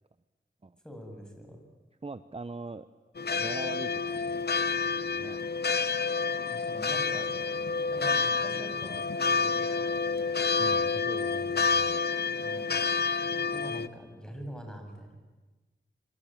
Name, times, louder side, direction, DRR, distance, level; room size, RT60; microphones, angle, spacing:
voice 1, 0.8-1.7 6.5-7.4 7.9-10.4 12.4-12.8 13.5-15.2, equal, 5° left, 3 dB, 7.9 m, -44 dB
voice 2, 2.0-2.9 3.3-4.8 5.1-5.4 6.3-6.6 10.6-12.0, right 3 dB, 30° right, 12 dB, 0.9 m, -42 dB
sound 1, 3.2-13.9, left 5 dB, 55° left, 0.9 m, -29 dB
26.5 x 24.5 x 9.1 m, 1.2 s
cardioid pair, 55°, 20 cm